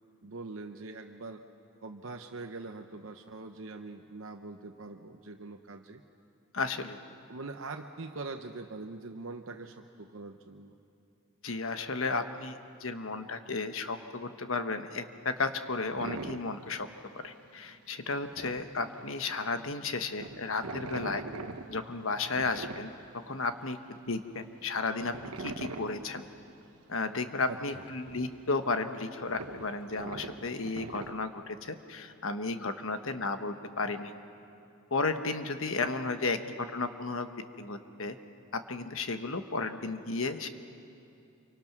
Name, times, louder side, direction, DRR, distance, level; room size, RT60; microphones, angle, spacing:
voice 1, 0.2-1.4 1.8-6.0 7.3-10.8 27.5-27.8, right 3 dB, 65° right, 4 dB, 0.9 m, -43 dB
voice 2, 6.5-7.0 11.4-16.9 17.2-21.2 21.7-22.9 23.3-23.8 24.1-26.2 26.9-34.1 34.9-37.3 37.6-38.2 38.5-40.5, left 3 dB, 65° left, 8 dB, 1.2 m, -33 dB
sound 1, 16.0-16.7 16.9-17.5 17.7-17.8 18.1-19.5 19.8-23.5 23.9-24.0 24.3-26.1 26.5-26.6 27.0-27.2 27.5-31.1, right 3 dB, 85° right, 1.2 m, -42 dB
28.0 x 24.5 x 6.0 m, 2.6 s
head